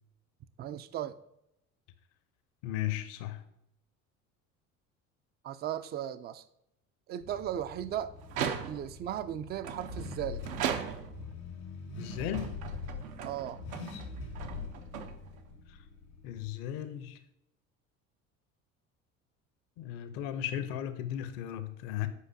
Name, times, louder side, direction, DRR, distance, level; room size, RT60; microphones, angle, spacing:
voice 1, 0.6-1.2 5.4-6.4 7.1-8.1 8.5-10.5 13.2-13.6, right 11 dB, 25° right, 0.3 m, -36 dB
voice 2, 2.6-3.4 12.0-12.5 15.7-15.8 16.2-17.2 19.8-22.1, left 11 dB, 60° left, 0.7 m, -36 dB
Car / Accelerating revving vroom, 7.2-16.4, left 4 dB, 85° left, 1.9 m, -44 dB
sound 1, 8.2-9.0 9.6-11.3 12.0-15.5, right 8 dB, 75° right, 0.8 m, -38 dB
8.3 x 4.9 x 2.7 m
hypercardioid pair, 65°, 41 cm